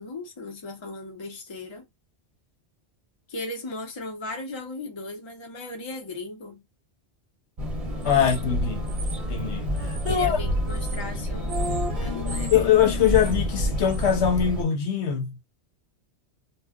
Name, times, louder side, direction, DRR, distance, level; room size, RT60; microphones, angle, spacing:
voice 1, 0.0-1.9 3.3-6.7 8.1-8.3 10.1-12.7, left 2 dB, 30° left, 0.7 m, -37 dB
sound 1, 7.6-14.6, equal, 35° right, 0.8 m, -28 dB
voice 2, 8.0-8.9 9.3-10.4 12.5-15.4, left 9 dB, 80° left, 1.0 m, -23 dB
2.3 x 2.1 x 3.5 m
omnidirectional pair, 1.1 m